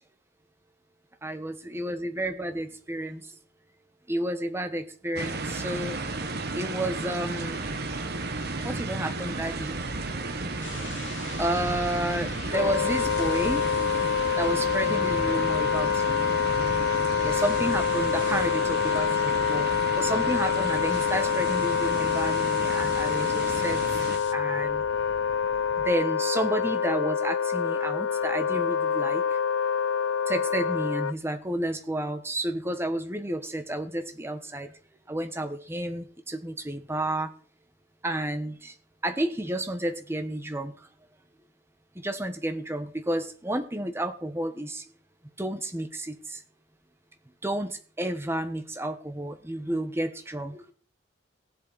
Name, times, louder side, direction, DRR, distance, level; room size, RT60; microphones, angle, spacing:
voice 1, 1.2-3.3 4.1-6.0 6.5-7.6 8.6-9.8 10.3-10.5 11.4-13.6 14.4-16.3 17.2-23.8 24.3-24.8 25.8-29.4 30.3-34.7 35.1-37.3 38.0-38.7 39.0-40.9 41.9-44.9 45.4-46.4 47.4-50.7, right 1 dB, 10° right, 8 dB, 1.0 m, -31 dB
sound 1, 5.2-24.2, right 3 dB, 50° right, 1.2 m, -33 dB
sound 2, 10.6-25.9, left 5 dB, 65° left, 1.0 m, -44 dB
Wind instrument woodwind instrument, 12.5-31.1, left 7 dB, 85° left, 0.5 m, -26 dB
17.5 x 7.7 x 4.0 m, 0.42 s
head